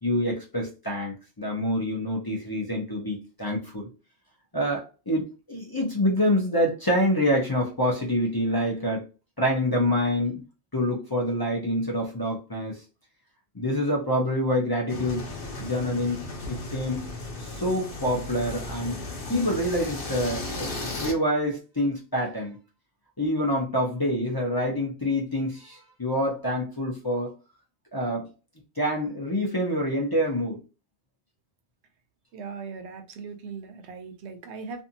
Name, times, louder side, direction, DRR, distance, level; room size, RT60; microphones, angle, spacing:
voice 1, 0.0-3.9 4.5-9.0 9.4-10.4 10.7-12.7 13.5-15.3 15.6-17.0 17.4-19.0 19.3-22.6 23.2-27.3 27.9-28.3 28.8-30.6, equal, 25° left, -4 dB, 0.5 m, -26 dB
sound 1, 14.9-21.1, left 2 dB, 60° left, 1.0 m, -35 dB
voice 2, 32.3-34.8, right 5 dB, 85° right, 7 dB, 0.9 m, -39 dB
2.6 x 2.4 x 2.7 m, 0.31 s
omnidirectional pair, 1.1 m